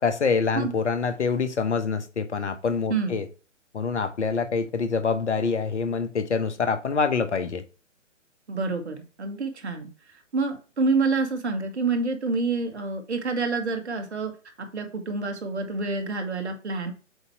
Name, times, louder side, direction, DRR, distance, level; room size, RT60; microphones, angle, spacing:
voice 1, 0.0-3.3 3.7-7.6, left 5 dB, 65° left, 1.1 m, -25 dB
voice 2, 2.9-3.2 8.5-14.3 14.6-16.9, right 4 dB, 60° right, 1.8 m, -28 dB
7.9 x 2.9 x 4.5 m
figure-of-eight pair, 135°, 38 cm